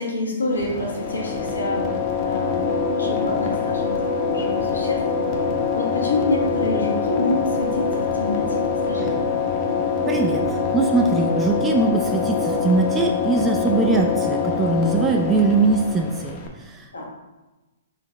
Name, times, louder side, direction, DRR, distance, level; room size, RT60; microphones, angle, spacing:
voice 1, 0.0-5.0 5.7-9.2 16.9-17.0, left 2 dB, 85° left, -2 dB, 1.2 m, -28 dB
sound 1, 0.5-16.5, left 5 dB, 35° left, 0.8 m, -24 dB
voice 2, 10.1-16.9, right 3 dB, 15° right, 2 dB, 0.4 m, -21 dB
4.0 x 3.8 x 3.1 m, 1.1 s
hypercardioid pair, 120°, 0 cm